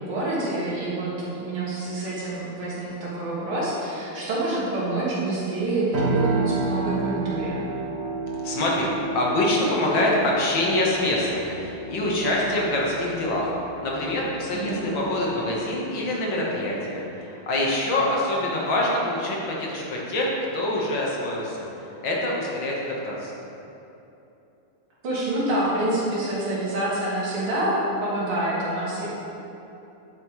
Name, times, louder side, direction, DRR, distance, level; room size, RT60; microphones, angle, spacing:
voice 1, 0.0-7.6 14.5-14.8 25.0-29.1, right 1 dB, 80° right, -7 dB, 2.9 m, -27 dB
sound 1, 5.9-15.7, right 3 dB, 40° right, 1.7 m, -31 dB
voice 2, 8.4-23.3, left 1 dB, 65° left, -3 dB, 1.9 m, -25 dB
10.5 x 7.2 x 3.1 m, 3.0 s
omnidirectional pair, 2.4 m